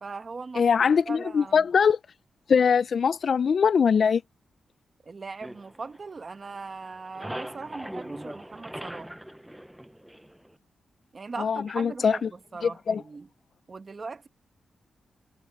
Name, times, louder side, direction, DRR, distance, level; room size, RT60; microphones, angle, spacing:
voice 1, 0.0-0.7 1.1-1.6 5.0-9.1 11.1-13.3 13.7-14.3, right 4 dB, 35° right, 1.0 m, -39 dB
voice 2, 0.6-2.0 2.5-4.2 11.4-12.3 12.6-13.0, left 6 dB, 50° left, 0.3 m, -22 dB
sound 1, 5.4-6.6 6.8-10.5, equal, 5° right, 0.5 m, -40 dB
wide cardioid pair, 130°, 0 cm